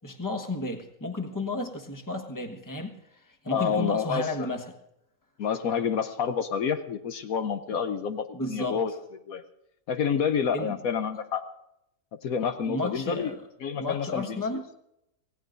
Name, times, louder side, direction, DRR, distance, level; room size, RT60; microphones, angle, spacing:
voice 1, 0.0-4.6 8.3-8.8 10.5-10.8 12.7-13.4 13.8-14.6, left 2 dB, 15° left, 4 dB, 1.2 m, -33 dB
voice 2, 3.5-4.5 5.4-8.9 9.3-9.4 9.9-11.4 12.2-13.3 13.6-14.4, left 7 dB, 70° left, 9 dB, 1.2 m, -28 dB
26.0 x 17.0 x 2.6 m, 0.81 s
omnidirectional pair, 1.6 m